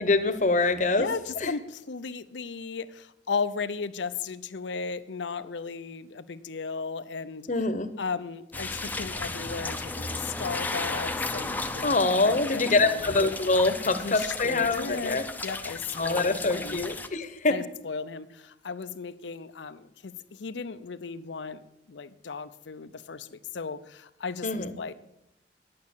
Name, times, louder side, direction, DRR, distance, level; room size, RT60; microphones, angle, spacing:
voice 1, 0.0-1.1 1.4-1.5 7.5-7.9 11.8-15.2 16.0-17.6 24.4-24.8, left 3 dB, 45° left, 10 dB, 0.9 m, -25 dB
voice 2, 0.9-7.5 8.0-12.0 12.2-13.0 14.0-16.8 17.5-24.9, left 5 dB, 85° left, 13 dB, 0.6 m, -36 dB
sound 1, 8.5-17.1, left 2 dB, 10° left, 0.6 m, -34 dB
10.5 x 8.6 x 7.1 m, 0.86 s
head